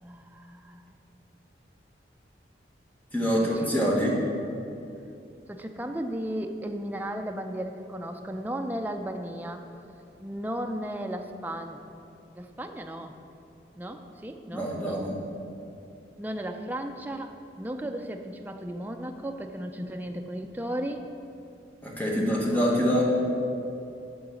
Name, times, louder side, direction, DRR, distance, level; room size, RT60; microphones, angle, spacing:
voice 1, 0.0-0.9 3.2-3.3 3.7-4.0 5.5-9.6 10.2-11.8 12.4-13.2 13.8-15.1 16.2-21.1 22.1-22.7, equal, 10° right, 4 dB, 0.4 m, -35 dB
voice 2, 3.1-4.1 14.5-15.2 21.8-23.0, equal, 10° left, -3 dB, 1.3 m, -25 dB
11.5 x 3.9 x 7.0 m, 2.7 s
head